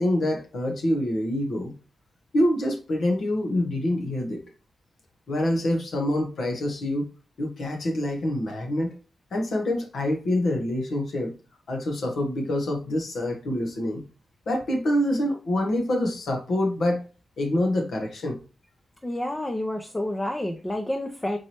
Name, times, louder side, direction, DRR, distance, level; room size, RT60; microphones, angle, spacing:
voice 1, 0.0-1.7 2.3-4.4 5.3-7.1 7.4-8.9 9.3-11.3 11.7-14.0 14.5-17.0 17.4-18.4, left 1 dB, 70° left, 2 dB, 1.0 m, -26 dB
voice 2, 19.0-21.4, left 1 dB, 20° left, 4 dB, 0.6 m, -29 dB
4.5 x 3.0 x 2.9 m, 0.34 s
cardioid pair, 65°, 0 cm